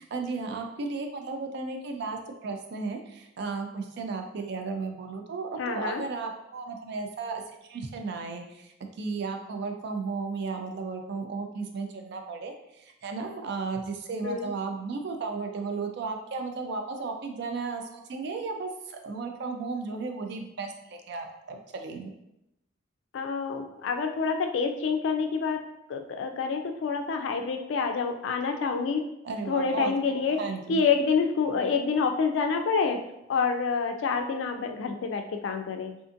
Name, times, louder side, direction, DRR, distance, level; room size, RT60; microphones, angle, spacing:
voice 1, 0.0-7.4 7.7-22.1 29.2-30.8, right 4 dB, 60° right, 4 dB, 0.4 m, -34 dB
voice 2, 5.6-6.0 14.2-14.5 23.1-25.6 25.9-29.0 29.5-30.4 30.7-33.0 33.3-35.9, left 5 dB, 70° left, 6 dB, 0.3 m, -27 dB
2.5 x 2.5 x 2.5 m, 0.86 s
head